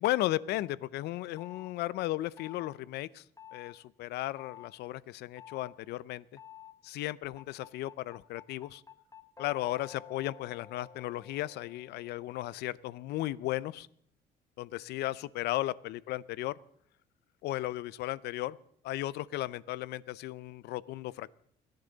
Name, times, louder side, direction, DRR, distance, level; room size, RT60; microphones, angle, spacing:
voice 1, 0.0-3.2 3.5-6.2 6.8-8.8 9.4-13.9 14.6-16.5 17.4-18.6 18.8-21.3, left 16 dB, 80° left, 20 dB, 0.6 m, -35 dB
sound 1, 1.4-1.7 2.4-2.7 3.4-3.7 4.4-4.7 5.4-5.7 6.4-6.7 7.4-12.4, left 9 dB, 20° left, 1.1 m, -51 dB
30.0 x 10.5 x 4.0 m, 0.66 s
cardioid pair, 110°, 17 cm